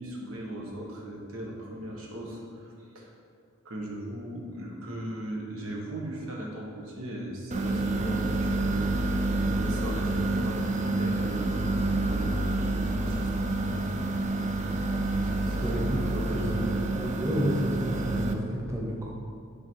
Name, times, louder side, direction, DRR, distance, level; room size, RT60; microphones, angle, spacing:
voice 1, 0.0-2.7 2.9-3.1 3.6-13.9 15.2-17.1, right 1 dB, 90° right, -2 dB, 1.4 m, -39 dB
sound 1, 7.5-18.3, right 2 dB, 35° right, 0.4 m, -28 dB
voice 2, 16.1-16.6 17.0-19.1, equal, 15° right, -4 dB, 1.1 m, -31 dB
9.8 x 4.0 x 4.5 m, 2.2 s
head